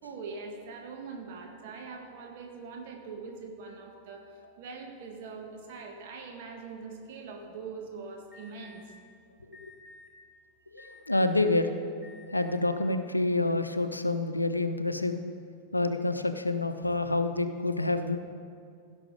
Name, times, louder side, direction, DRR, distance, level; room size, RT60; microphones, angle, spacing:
voice 1, 0.0-8.8, right 4 dB, 50° right, 1 dB, 1.8 m, -42 dB
Alarm, 8.3-8.8 9.5-10.1 10.8-11.4 12.0-12.6, left 2 dB, 5° right, 3.1 m, -52 dB
voice 2, 10.7-11.7 12.3-15.2 15.7-18.2, left 2 dB, 85° left, 9 dB, 0.5 m, -28 dB
16.0 x 6.1 x 5.0 m, 2.3 s
figure-of-eight pair, 90°, 0 cm